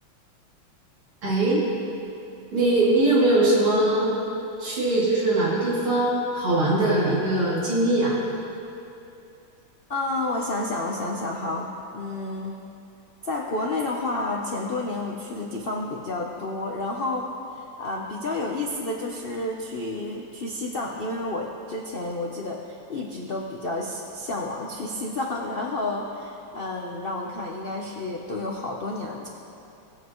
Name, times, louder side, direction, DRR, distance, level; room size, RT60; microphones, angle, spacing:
voice 1, 1.2-1.6 2.5-4.2 4.6-8.1, right 2 dB, 90° right, -8 dB, 3.7 m, -21 dB
voice 2, 9.9-12.6 13.2-17.3 17.5-29.3, left 2 dB, 90° left, -1 dB, 0.5 m, -30 dB
20.5 x 7.6 x 3.1 m, 2.8 s
omnidirectional pair, 2.2 m